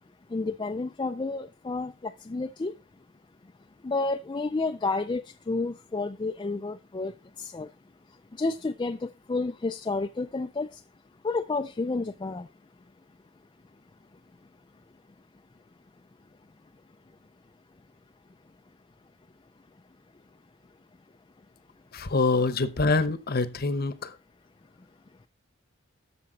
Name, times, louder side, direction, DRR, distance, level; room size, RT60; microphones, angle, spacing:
voice 1, 0.3-2.8 3.4-3.5 3.8-7.7 8.1-10.8 11.2-12.5, left 3 dB, 20° left, 0.4 m, -31 dB
voice 2, 21.9-24.1, left 3 dB, 50° left, 0.9 m, -25 dB
12.5 x 6.9 x 3.9 m
head